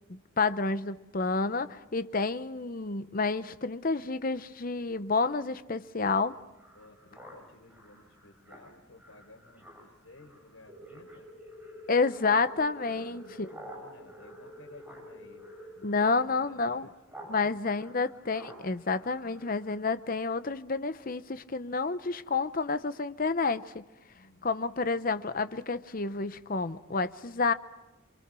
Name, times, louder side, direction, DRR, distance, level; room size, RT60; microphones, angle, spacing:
voice 1, 0.1-6.3 11.9-13.5 15.8-16.9 17.3-23.8 24.4-27.5, left 4 dB, 40° left, 0.8 m, -29 dB
Speech synthesizer, 6.0-17.3 17.6-19.9, right 1 dB, 5° right, 6.5 m, -52 dB
voice 2, 6.7-11.3 12.8-15.5 15.7-16.9 17.4-17.5 24.1-24.5, left 2 dB, 75° left, 4.1 m, -55 dB
sound 1, 10.7-15.7, left 1 dB, 35° right, 3.2 m, -49 dB
29.0 x 24.5 x 6.2 m
head